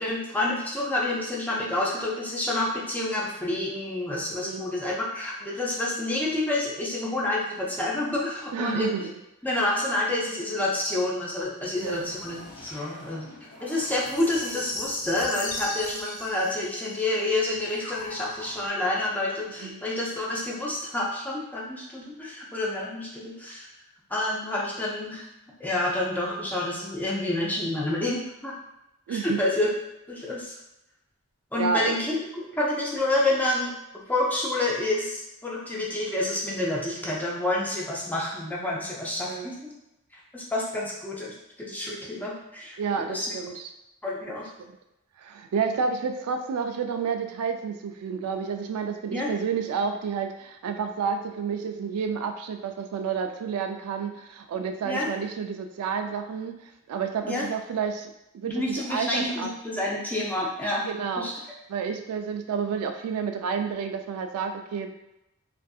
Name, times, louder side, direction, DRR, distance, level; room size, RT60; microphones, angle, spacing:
voice 1, 0.0-8.9 9.4-13.3 13.6-23.7 24.1-25.3 25.6-28.5 29.1-29.7 30.1-30.5 31.5-32.2 32.5-33.7 34.1-39.7 40.3-43.3 44.0-44.5 49.1-49.3 54.8-55.1 57.2-57.5 58.4-60.9 61.2-61.3, left 2 dB, 10° left, -5 dB, 0.4 m, -28 dB
voice 2, 4.3-4.6 8.5-9.1 11.8-12.0 19.6-19.8 29.1-29.4 31.6-31.9 39.2-39.5 42.8-43.7 44.6-44.7 45.2-58.6 58.9-59.5 60.9-61.3 61.7-64.9, right 6 dB, 80° right, 10 dB, 0.3 m, -30 dB
sound 1, 11.7-18.7, left 2 dB, 75° left, 0.6 m, -39 dB
2.6 x 2.5 x 2.3 m, 0.88 s
head